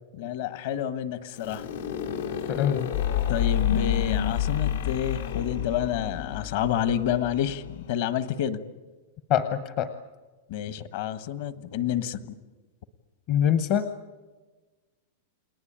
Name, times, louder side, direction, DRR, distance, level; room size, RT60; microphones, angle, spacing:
voice 1, 0.1-1.7 3.3-8.6 10.5-12.4, left 10 dB, 50° left, 13 dB, 1.3 m, -29 dB
sound 1, 1.3-7.0, left 7 dB, 90° left, 4.0 m, -37 dB
voice 2, 2.5-2.9 9.3-9.9 13.3-13.8, left 9 dB, 30° left, 10 dB, 0.9 m, -24 dB
sound 2, 2.9-7.9, left 10 dB, 70° left, 1.9 m, -28 dB
29.5 x 19.5 x 8.8 m, 1.3 s
supercardioid pair, 180°, 0 cm